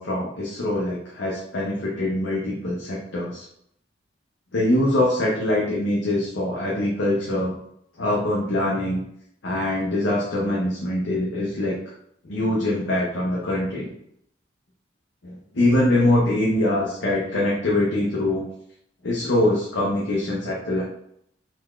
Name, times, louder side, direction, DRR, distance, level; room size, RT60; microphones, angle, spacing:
voice 1, 0.0-3.5 4.5-7.6 8.0-9.0 9.4-11.8 12.2-13.9 15.2-18.5 19.0-20.8, left 1 dB, 75° left, -4 dB, 0.7 m, -23 dB
3.9 x 2.4 x 3.1 m, 0.75 s
head